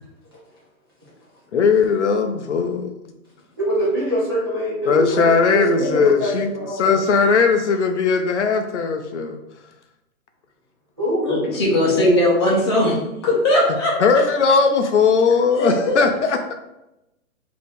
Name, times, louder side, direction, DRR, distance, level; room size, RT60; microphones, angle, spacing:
voice 1, 1.5-2.9 4.9-6.5 6.8-9.4 14.0-16.5, left 5 dB, 55° left, 6 dB, 0.5 m, -18 dB
voice 2, 3.6-7.0 11.0-11.2, right 1 dB, 20° right, -8 dB, 0.5 m, -23 dB
voice 3, 11.2-12.9 13.2-13.9 15.5-16.0, left 1 dB, 20° left, -4 dB, 0.8 m, -18 dB
4.0 x 2.8 x 3.4 m, 0.91 s
hypercardioid pair, 165°, 42 cm